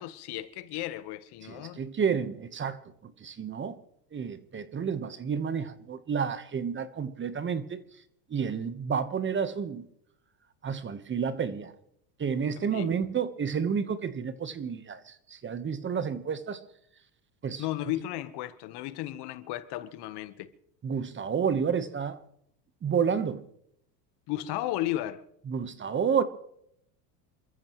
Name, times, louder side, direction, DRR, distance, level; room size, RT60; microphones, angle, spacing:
voice 1, 0.0-1.8 12.7-13.0 17.6-20.5 24.3-25.2, left 14 dB, 50° left, 1.3 m, -34 dB
voice 2, 1.5-3.8 4.1-7.8 8.3-9.8 10.6-11.7 12.2-16.6 17.4-17.6 20.8-22.2 22.8-23.4 25.5-26.2, right 7 dB, 25° right, 1.2 m, -30 dB
28.0 x 14.5 x 3.1 m
supercardioid pair, 110°, 50 cm